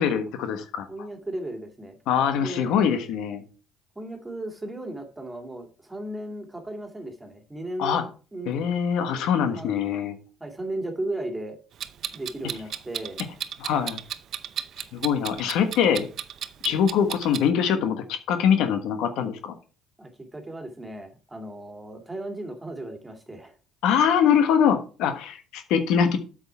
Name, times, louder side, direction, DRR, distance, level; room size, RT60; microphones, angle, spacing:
voice 1, 0.0-0.9 2.1-3.4 7.8-8.0 8.5-10.2 13.6-14.0 14.9-16.1 16.6-19.5 23.8-26.2, left 8 dB, 70° left, 8 dB, 1.3 m, -23 dB
voice 2, 0.9-2.0 2.4-2.7 4.0-8.6 9.5-9.7 10.4-11.6 12.1-13.2 16.6-16.7 20.0-23.6, right 1 dB, 15° right, 4 dB, 2.5 m, -35 dB
Clock, 11.8-17.5, right 9 dB, 55° right, 0.6 m, -34 dB
8.1 x 6.4 x 4.5 m, 0.37 s
hypercardioid pair, 70°, 0 cm